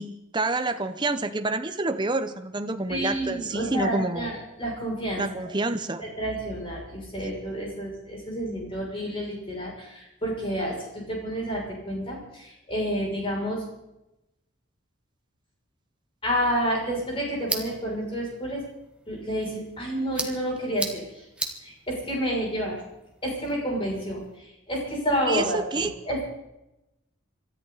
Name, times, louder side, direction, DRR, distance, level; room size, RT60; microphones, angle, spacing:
voice 1, 0.0-4.3 5.2-6.0 25.3-25.9, right 2 dB, 20° right, 8 dB, 0.8 m, -28 dB
voice 2, 2.9-5.5 6.0-13.6 16.2-18.6 19.1-21.0 21.6-22.8 23.2-26.2, equal, 25° left, -3 dB, 6.5 m, -29 dB
sound 1, 16.4-24.4, right 2 dB, 5° right, 1.2 m, -39 dB
26.5 x 13.5 x 4.1 m, 0.91 s
head